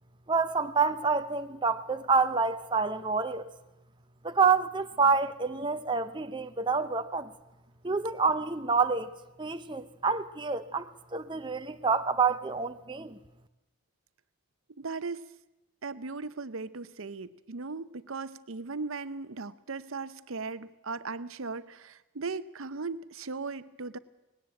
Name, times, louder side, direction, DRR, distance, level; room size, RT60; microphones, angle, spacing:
voice 1, 0.3-3.5 4.2-7.3 7.8-9.1 9.4-13.2, right 4 dB, 20° right, 0.6 m, -28 dB
voice 2, 14.8-15.3 15.8-24.0, right 4 dB, 75° right, 0.8 m, -37 dB
19.5 x 17.5 x 8.8 m
head